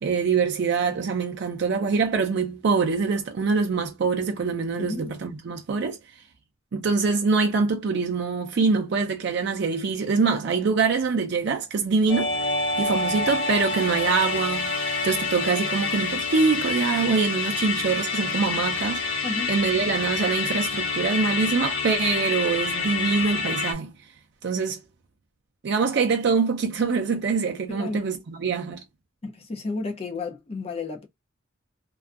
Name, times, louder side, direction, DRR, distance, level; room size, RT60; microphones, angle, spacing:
voice 1, 0.0-6.0 6.7-12.5 12.8-19.2 19.5-23.9 24.4-24.8 25.6-28.8, right 4 dB, 55° right, 0.4 m, -24 dB
voice 2, 4.8-5.1 19.2-19.5 27.7-28.0 29.2-31.1, left 3 dB, 30° left, 0.4 m, -32 dB
Musical instrument, 12.1-23.7, left 4 dB, 65° left, 0.9 m, -27 dB
2.5 x 2.3 x 2.3 m
head